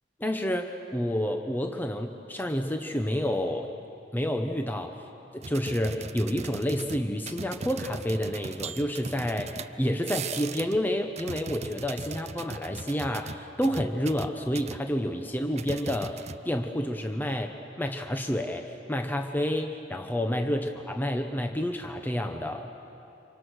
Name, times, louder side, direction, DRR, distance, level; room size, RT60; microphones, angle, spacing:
voice 1, 0.2-3.7 4.1-5.0 5.3-22.7, equal, 10° left, 4 dB, 0.9 m, -29 dB
sound 1, 5.4-10.8 11.1-14.8 15.6-16.7 16.9-17.1, right 4 dB, 35° right, 0.6 m, -39 dB
30.0 x 26.0 x 6.4 m, 2.8 s
head